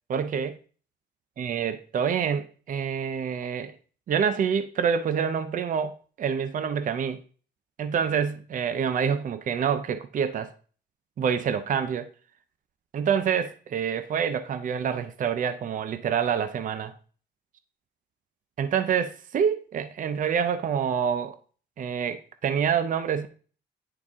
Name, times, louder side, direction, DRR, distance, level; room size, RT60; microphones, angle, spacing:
voice 1, 0.1-0.6 1.4-3.7 4.1-7.2 7.8-10.5 11.2-12.1 12.9-16.9 18.6-21.4 21.8-23.3, right 7 dB, 45° right, 0.5 m, -27 dB
9.6 x 4.8 x 3.6 m
wide cardioid pair, 180°, 19 cm